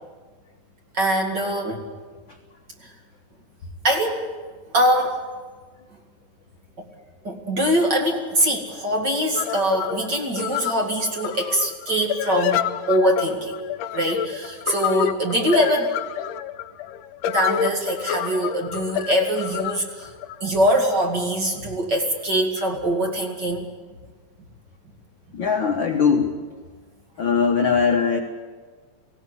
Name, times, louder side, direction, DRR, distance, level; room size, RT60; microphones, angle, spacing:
voice 1, 0.9-1.9 2.8-2.9 3.8-4.3 4.7-5.2 7.2-13.5 13.9-15.9 17.3-20.1 20.4-23.7, right 1 dB, 35° right, 1 dB, 2.5 m, -23 dB
sound 1, 9.3-21.0, left 11 dB, 80° left, 2.3 m, -28 dB
voice 2, 25.3-26.3 27.2-28.2, left 6 dB, 60° left, 3 dB, 1.3 m, -20 dB
19.5 x 16.0 x 9.8 m, 1.4 s
omnidirectional pair, 3.8 m